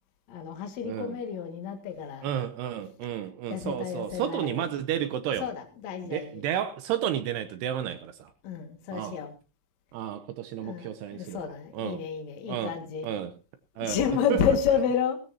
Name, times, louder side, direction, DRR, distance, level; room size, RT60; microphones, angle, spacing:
voice 1, 0.3-2.3 3.0-3.1 3.5-4.7 5.4-6.5 8.4-9.3 10.6-13.1 13.7-15.2, left 7 dB, 50° left, 2.2 m, -30 dB
voice 2, 0.8-1.2 2.2-5.5 6.0-8.3 8.9-9.2 9.9-11.5 11.7-12.0 12.5-12.7 13.0-13.3 13.8-14.0 14.3-14.4, right 10 dB, 85° right, 2.3 m, -31 dB
17.5 x 16.0 x 2.9 m
omnidirectional pair, 5.8 m